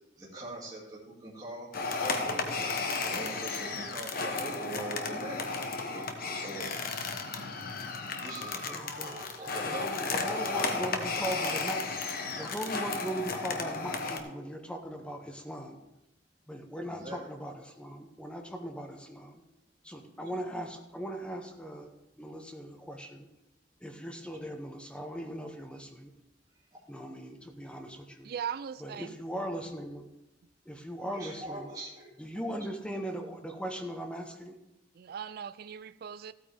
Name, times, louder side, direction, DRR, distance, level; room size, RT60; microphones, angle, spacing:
voice 1, 0.2-5.6 6.3-6.7 8.1-8.7 9.0-11.0 16.9-17.2 26.7-26.8 31.1-32.1, right 1 dB, 20° right, -6 dB, 2.4 m, -43 dB
sound 1, 1.7-14.2, left 4 dB, 55° left, 1.1 m, -34 dB
voice 2, 8.7-9.2 9.6-11.9 12.3-15.8 16.5-19.4 19.8-21.9 22.2-23.3 23.8-26.1 26.9-28.3 28.8-30.1 30.6-31.7 32.2-34.6, equal, 5° left, 4 dB, 0.9 m, -39 dB
voice 3, 28.2-29.1 35.0-36.3, right 8 dB, 55° right, 14 dB, 0.3 m, -39 dB
15.0 x 8.8 x 3.5 m, 0.94 s
head